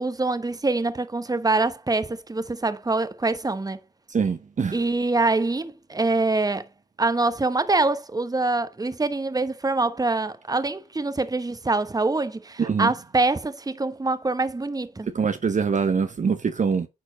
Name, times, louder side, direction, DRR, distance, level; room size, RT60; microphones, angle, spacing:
voice 1, 0.0-3.8 4.7-6.7 7.0-15.1, right 3 dB, 20° right, 1.0 m, -25 dB
voice 2, 4.1-4.8 12.6-12.9 15.1-16.9, right 6 dB, 40° right, 0.8 m, -24 dB
9.3 x 4.4 x 4.0 m
supercardioid pair, 45°, 19 cm